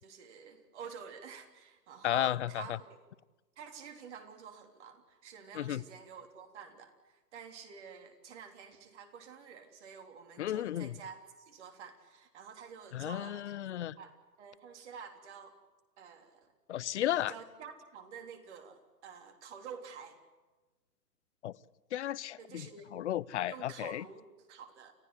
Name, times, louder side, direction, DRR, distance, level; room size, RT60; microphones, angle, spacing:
voice 1, 0.0-3.0 3.6-11.2 11.5-13.7 14.0-14.1 14.4-15.6 16.0-16.5 17.2-20.2 22.4-22.9 23.5-24.9, right 6 dB, 45° right, 6 dB, 3.5 m, -49 dB
voice 2, 2.0-2.8 5.5-5.8 10.4-11.0 12.9-14.0 16.7-17.3 21.4-21.6 21.9-24.0, left 12 dB, 45° left, 22 dB, 0.7 m, -34 dB
29.5 x 15.0 x 9.7 m, 1.2 s
hypercardioid pair, 140°, 48 cm